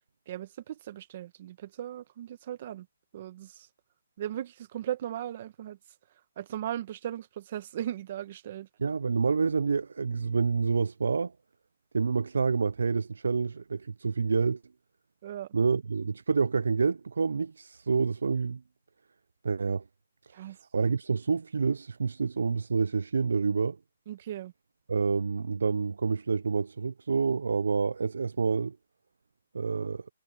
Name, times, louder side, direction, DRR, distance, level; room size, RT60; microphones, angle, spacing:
voice 1, 0.3-2.9 3.1-3.7 4.2-5.8 6.4-8.7 15.2-15.5 20.3-20.6 24.1-24.5, right 11 dB, 35° right, 1.3 m, -37 dB
voice 2, 8.8-11.3 11.9-14.6 15.5-18.6 19.4-19.8 20.2-23.8 24.9-28.8 29.5-30.1, right 5 dB, 80° right, 0.4 m, -28 dB
hypercardioid pair, 170°, 0 cm